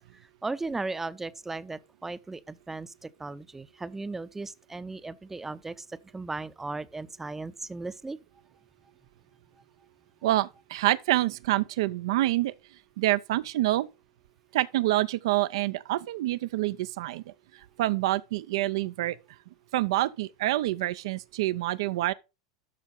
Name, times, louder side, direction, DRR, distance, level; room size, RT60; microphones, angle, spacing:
voice 1, 0.4-8.2, right 3 dB, 10° right, 0.6 m, -36 dB
voice 2, 10.2-12.5 13.0-13.9 14.5-19.2 19.7-22.1, right 16 dB, 65° right, 0.4 m, -27 dB
12.5 x 4.4 x 3.8 m
figure-of-eight pair, 85°, 3 cm